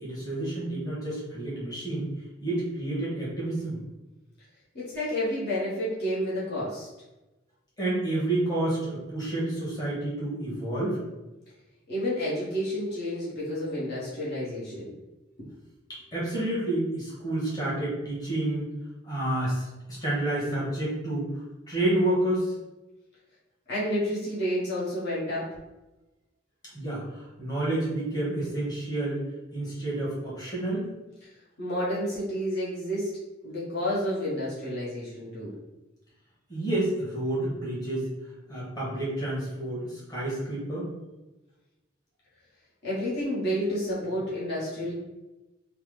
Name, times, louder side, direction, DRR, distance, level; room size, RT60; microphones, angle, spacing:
voice 1, 0.0-2.1 2.4-3.8 7.8-11.0 16.1-18.7 19.0-21.3 21.7-22.5 26.7-29.2 29.5-30.9 36.5-38.1 38.5-40.9, right 1 dB, 20° left, -8 dB, 1.3 m, -29 dB
voice 2, 4.7-6.9 11.9-14.9 23.7-25.5 31.6-33.1 33.4-35.5 42.8-44.9, equal, 60° left, -8 dB, 1.0 m, -30 dB
3.3 x 2.0 x 3.1 m, 1.0 s
head